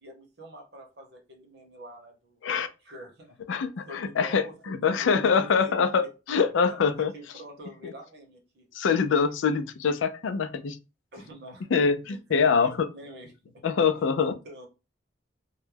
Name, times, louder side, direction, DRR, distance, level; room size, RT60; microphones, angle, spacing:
voice 1, 0.0-2.4 2.8-3.4 3.8-6.1 6.7-8.7 11.1-11.7 12.0-13.3 14.0-14.1 14.4-14.7, right 1 dB, 60° right, 0.8 m, -46 dB
voice 2, 3.5-7.1 7.8-7.9 8.7-10.8 11.7-12.7 13.6-14.4, left 5 dB, 85° left, 0.4 m, -24 dB
2.2 x 2.1 x 3.2 m
head